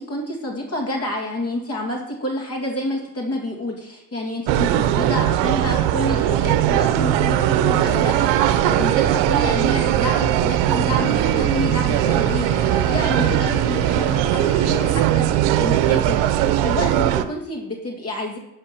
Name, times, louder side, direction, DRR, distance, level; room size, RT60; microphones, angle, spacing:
voice 1, 0.0-12.5 12.8-18.4, left 1 dB, 35° left, -1 dB, 2.4 m, -28 dB
sound 1, 4.5-17.2, right 12 dB, 75° right, 0.8 m, -19 dB
sound 2, 11.0-15.0, left 7 dB, 75° left, 1.2 m, -36 dB
11.0 x 3.7 x 6.0 m, 0.88 s
supercardioid pair, 85°, 44 cm